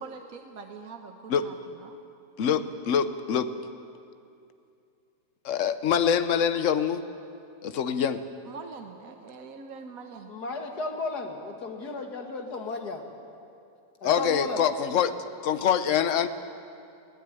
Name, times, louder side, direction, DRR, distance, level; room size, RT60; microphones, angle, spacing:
voice 1, 0.0-2.0 8.5-10.3, right 5 dB, 60° right, 4 dB, 1.5 m, -43 dB
voice 2, 2.4-3.5 5.4-7.0 7.6-8.2 14.0-15.1 15.4-16.3, left 8 dB, 55° left, 11 dB, 1.1 m, -25 dB
voice 3, 10.3-13.0 14.0-14.6, left 3 dB, 75° left, 4 dB, 2.5 m, -34 dB
21.5 x 16.0 x 9.1 m, 2.5 s
omnidirectional pair, 1.7 m